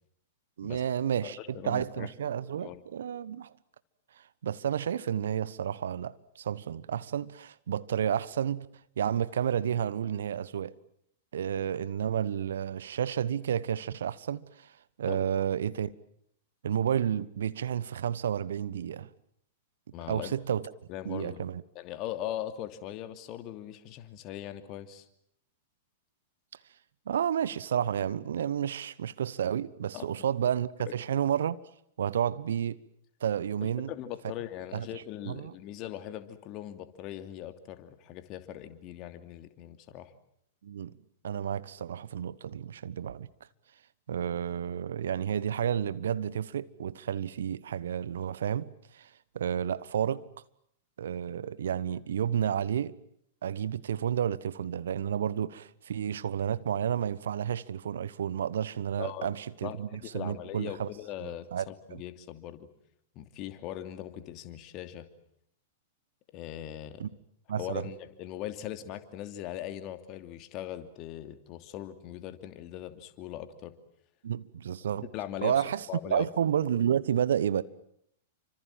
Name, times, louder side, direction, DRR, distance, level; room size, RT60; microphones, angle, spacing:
voice 1, 0.6-3.5 4.4-8.7 9.0-10.7 11.3-14.7 15.0-15.9 16.6-19.1 20.1-20.7 21.0-21.6 27.1-31.6 32.0-32.8 33.2-33.9 34.7-34.9 35.2-35.5 40.6-40.9 41.2-43.3 44.1-49.1 49.3-50.3 51.0-52.9 53.4-60.9 61.2-62.0 67.0-67.1 67.5-67.8 74.2-75.1 75.4-75.8 76.1-77.6, right 9 dB, 70° right, 1.1 m, -31 dB
voice 2, 1.2-2.1 2.5-2.8 15.1-15.3 19.9-20.3 20.9-21.4 21.7-25.1 29.9-30.1 30.8-30.9 33.6-40.1 59.0-59.3 59.6-62.7 63.1-65.1 66.3-67.0 67.6-73.7 75.1-76.3, left 12 dB, 40° left, 2.8 m, -40 dB
29.5 x 25.5 x 7.5 m
figure-of-eight pair, 100°, 0 cm